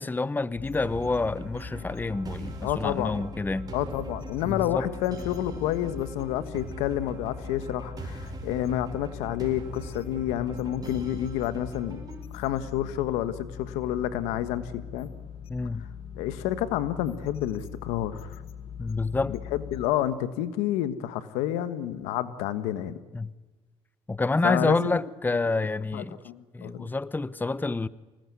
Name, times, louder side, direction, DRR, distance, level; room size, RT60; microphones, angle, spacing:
voice 1, 0.0-3.7 4.4-4.9 15.5-15.8 18.8-19.3 23.1-23.3 24.1-26.2 26.5-27.9, left 3 dB, 15° left, 0.9 m, -28 dB
sound 1, 0.5-19.9, left 8 dB, 60° left, 2.0 m, -42 dB
sound 2, 0.8-12.2, right 3 dB, 35° right, 5.7 m, -42 dB
voice 2, 2.6-3.2 3.7-12.0 12.3-15.1 16.2-18.4 19.3-23.0 24.4-25.0 25.9-26.9, left 12 dB, 85° left, 1.4 m, -29 dB
25.5 x 20.0 x 9.7 m
supercardioid pair, 70°, 11 cm